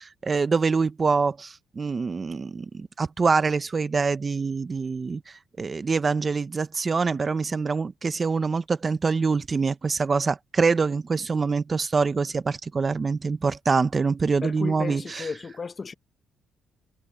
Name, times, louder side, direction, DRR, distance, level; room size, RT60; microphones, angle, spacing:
voice 1, 0.0-5.2 5.6-15.3, right 4 dB, 35° right, 1.0 m, -25 dB
voice 2, 14.4-15.9, left 4 dB, 35° left, 1.2 m, -34 dB
cardioid pair, 90°, 0 cm